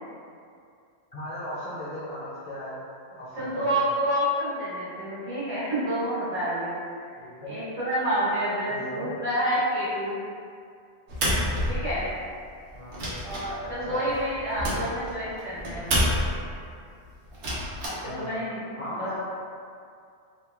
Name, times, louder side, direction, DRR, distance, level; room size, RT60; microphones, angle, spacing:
voice 1, 1.1-2.8 3.1-3.8 7.2-7.6 8.7-9.1 12.7-13.1 13.6-14.1 18.0-19.2, equal, 55° left, -9 dB, 0.4 m, -37 dB
voice 2, 3.3-6.8 7.4-10.2 11.7-12.0 13.2-15.9 17.8-18.6 18.9-19.1, equal, 35° right, -13 dB, 1.1 m, -28 dB
sound 1, 11.1-12.3 12.7-16.6 17.3-17.9, equal, 85° right, 0.9 m, -28 dB
2.9 x 2.1 x 2.3 m, 2.3 s
omnidirectional pair, 1.1 m